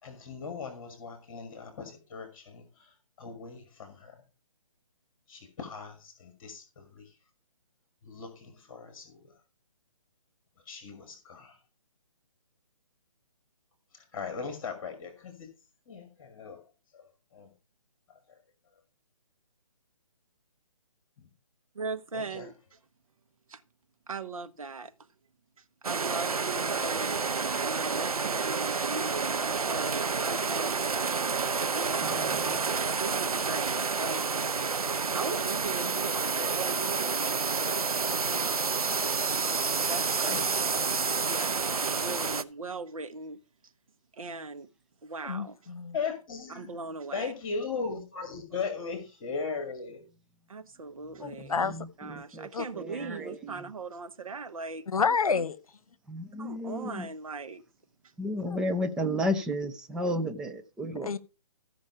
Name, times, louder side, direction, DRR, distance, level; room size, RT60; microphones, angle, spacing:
voice 1, 0.0-4.2 5.3-7.1 8.0-9.3 10.7-11.6 13.9-15.5 15.9-16.6 16.9-17.1 17.3-17.5 21.2-21.3 22.1-22.5 40.2-41.0 41.9-42.3 45.9-46.7 47.1-50.0, left 5 dB, 40° left, 2.3 m, -38 dB
voice 2, 21.7-22.8 23.5-23.6 24.1-24.9 25.6-31.1 31.7-34.6 35.1-37.8 38.2-38.8 39.2-40.4 41.3-43.4 44.1-44.7 45.0-45.6 46.5-47.3 50.5-51.7 52.0-55.1 56.4-57.6, right 4 dB, 75° right, 1.1 m, -39 dB
sound 1, 25.8-42.4, right 5 dB, 90° right, 0.7 m, -29 dB
voice 3, 32.2-32.5 51.4-52.5 52.7-53.5 56.1-57.1 58.2-61.1, equal, 5° right, 0.4 m, -33 dB
voice 4, 45.2-46.0 51.2-51.8 52.5-52.6 54.9-55.6 58.4-58.6 61.0-61.2, left 5 dB, 80° left, 1.0 m, -29 dB
14.0 x 5.4 x 4.8 m
figure-of-eight pair, 145°, 18 cm